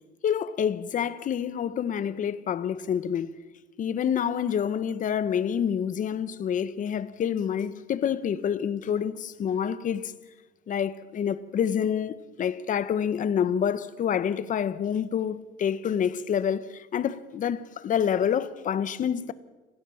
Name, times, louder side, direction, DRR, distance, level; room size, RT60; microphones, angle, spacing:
voice 1, 0.2-3.3 3.8-10.1 10.7-19.3, left 8 dB, 50° left, 1.3 m, -27 dB
27.5 x 15.5 x 7.3 m
cardioid pair, 110°, 17 cm